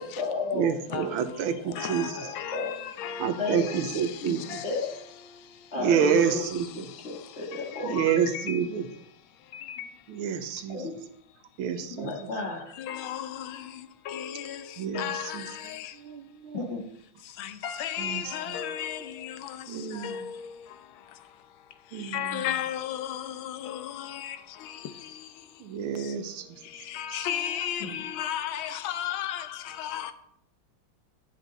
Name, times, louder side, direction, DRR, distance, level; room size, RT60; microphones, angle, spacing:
voice 1, 0.0-1.1 1.6-2.7 3.4-3.7 4.2-4.9 5.7-6.5 6.7-7.9 10.7-11.0 12.0-12.7 16.5-16.8 27.8-27.9, left 3 dB, 35° left, 1.7 m, -33 dB
voice 2, 0.5-2.1 3.2-4.6 5.7-6.9 7.8-8.9 10.1-10.8 11.6-12.1 14.8-15.1 15.3-15.5 16.0-16.6 18.0-18.3 19.7-20.3 21.9-22.4 25.6-26.4, right 7 dB, 85° right, 1.6 m, -28 dB
voice 3, 1.8-4.8 5.9-6.7 7.5-8.7 9.5-9.9 12.8-13.7 14.1-14.6 14.9-15.9 17.4-19.7 19.9-20.5 22.1-24.4 24.6-24.8 26.9-30.1, left 10 dB, 80° left, 1.4 m, -34 dB
10.0 x 6.1 x 3.9 m
omnidirectional pair, 2.3 m